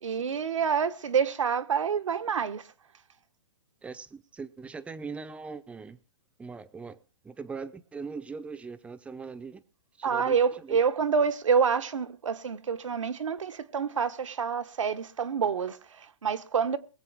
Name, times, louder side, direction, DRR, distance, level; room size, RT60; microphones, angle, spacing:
voice 1, 0.0-2.6 10.0-16.8, right 6 dB, 85° right, 1.0 m, -27 dB
voice 2, 3.8-6.0 6.4-7.0 7.2-9.6 10.0-10.8, right 4 dB, 10° right, 0.6 m, -40 dB
21.5 x 7.8 x 4.6 m
hypercardioid pair, 140°, 16 cm